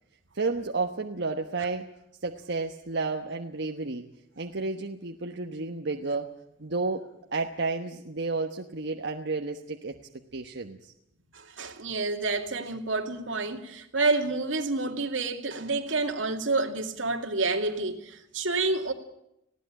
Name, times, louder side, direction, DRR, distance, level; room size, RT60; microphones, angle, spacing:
voice 1, 0.3-1.9 2.2-4.0 4.4-6.3 6.6-9.9 10.3-10.9, right 3 dB, 65° right, 1.2 m, -31 dB
voice 2, 11.3-18.9, right 3 dB, 85° right, 2.4 m, -29 dB
20.0 x 16.0 x 8.9 m
head